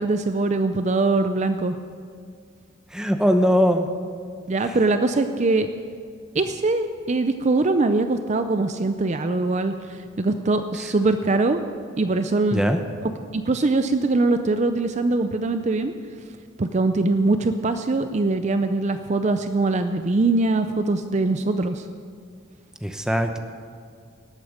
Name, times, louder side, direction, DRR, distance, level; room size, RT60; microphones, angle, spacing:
voice 1, 0.0-1.8 4.5-5.7 6.3-9.7 10.2-11.6 12.0-12.6 13.0-15.9 16.6-21.8, right 3 dB, 35° right, 8 dB, 0.5 m, -22 dB
voice 2, 2.9-3.9 4.7-4.8 12.5-12.8 22.8-23.4, equal, 5° right, 6 dB, 0.8 m, -21 dB
18.5 x 8.5 x 6.5 m, 2.1 s
head